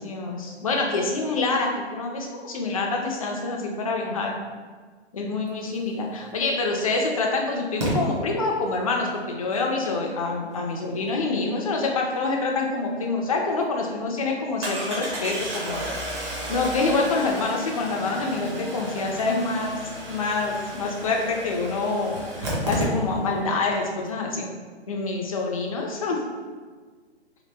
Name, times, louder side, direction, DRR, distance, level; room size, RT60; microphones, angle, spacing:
voice 1, 0.0-4.3 5.1-19.7 20.1-24.5 24.9-26.2, left 3 dB, 35° left, 0 dB, 0.4 m, -26 dB
Engine starting, 6.3-6.4 7.8-7.9 13.0-13.1 13.5-13.6 14.6-23.4 23.7-23.8 24.0-24.1, right 1 dB, 25° right, 0.6 m, -32 dB
2.9 x 2.6 x 3.3 m, 1.5 s
figure-of-eight pair, 140°, 34 cm